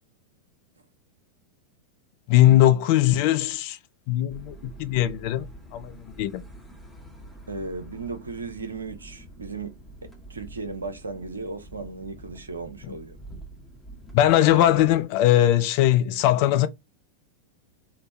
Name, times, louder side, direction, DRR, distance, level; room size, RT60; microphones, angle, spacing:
voice 1, 2.3-3.8 4.1-6.4 14.1-16.7, left 13 dB, 45° left, 0.4 m, -20 dB
sound 1, 4.3-15.1, right 1 dB, 5° left, 0.9 m, -46 dB
voice 2, 7.5-13.2, right 3 dB, 75° right, 0.7 m, -36 dB
3.2 x 2.1 x 4.0 m
figure-of-eight pair, 90°, 0 cm